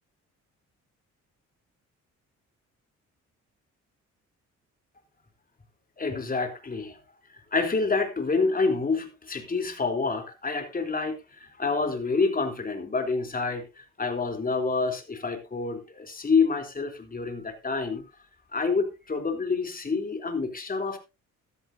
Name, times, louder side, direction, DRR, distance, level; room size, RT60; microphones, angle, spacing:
voice 1, 6.0-7.0 7.5-18.0 18.5-21.0, left 4 dB, 30° left, 5 dB, 3.4 m, -28 dB
14.5 x 13.0 x 2.7 m, 0.27 s
cardioid pair, 90°, 30 cm